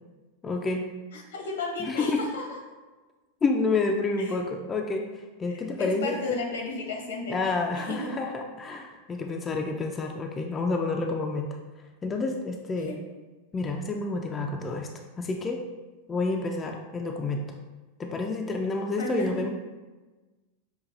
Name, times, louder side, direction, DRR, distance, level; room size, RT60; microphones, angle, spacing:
voice 1, 0.4-0.8 1.8-2.2 3.4-6.4 7.3-11.5 12.0-13.0 13.5-14.9 15.2-15.6 16.1-17.4 18.0-19.5, left 3 dB, 20° left, 2 dB, 0.3 m, -29 dB
voice 2, 1.1-2.6 4.2-4.3 5.5-8.1 12.9-13.0 19.0-19.5, left 3 dB, 75° left, 0 dB, 0.8 m, -34 dB
5.4 x 2.2 x 2.4 m, 1.2 s
hypercardioid pair, 95°, 0 cm